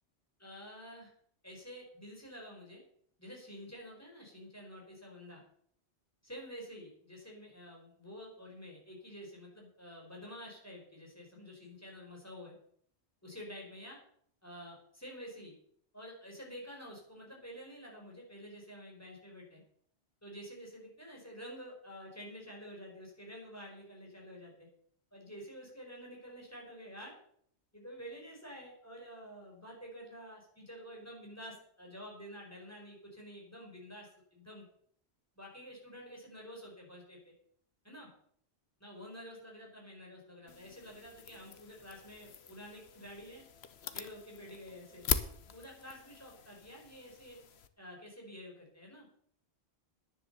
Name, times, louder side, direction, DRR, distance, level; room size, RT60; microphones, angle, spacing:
voice 1, 0.4-1.1 1.4-2.8 3.2-5.4 6.2-12.5 13.2-14.0 14.4-15.5 15.9-19.6 20.2-24.7 25.1-27.2 27.7-34.7 35.4-37.3 37.8-38.1 38.8-43.4 43.9-45.0 45.4-47.4 47.8-49.1, equal, 15° left, -2 dB, 4.8 m, -49 dB
sound 1, 40.5-47.7, left 7 dB, 70° left, 1.1 m, -41 dB
10.5 x 10.0 x 6.8 m, 0.63 s
omnidirectional pair, 1.1 m